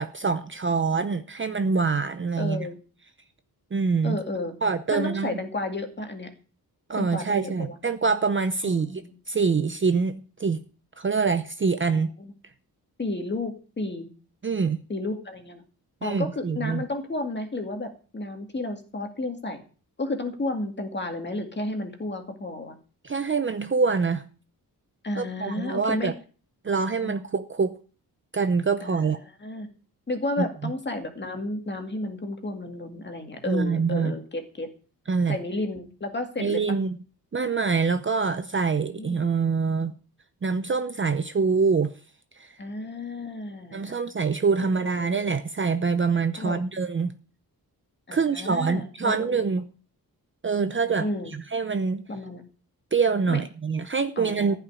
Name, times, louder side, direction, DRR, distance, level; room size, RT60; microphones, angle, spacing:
voice 1, 0.0-2.7 3.7-4.2 4.6-5.4 6.9-9.0 9.3-10.6 11.0-12.1 14.4-14.8 16.0-16.8 23.0-24.2 25.2-26.1 26.6-27.7 28.3-29.2 30.4-30.7 33.5-34.1 35.1-35.4 36.4-37.0 37.3-39.9 40.4-41.9 42.4-42.5 43.7-47.1 48.1-49.7 50.4-51.1 51.5-52.0 52.9-54.5, right 5 dB, 30° right, 10 dB, 0.7 m, -25 dB
voice 2, 2.4-2.8 4.0-4.6 4.9-6.3 7.0-7.8 8.6-9.1 11.9-12.3 13.0-14.1 14.9-15.6 16.0-19.6 20.0-22.8 25.0-26.1 26.8-27.1 28.8-29.1 29.4-29.7 30.1-34.7 35.3-36.8 38.7-39.2 42.6-44.0 44.8-45.2 46.3-46.6 48.1-49.5 51.0-51.3 52.1-52.4 53.3-53.4 54.2-54.6, left 2 dB, 30° left, 5 dB, 2.2 m, -32 dB
14.5 x 5.9 x 9.8 m, 0.38 s
wide cardioid pair, 175°, 38 cm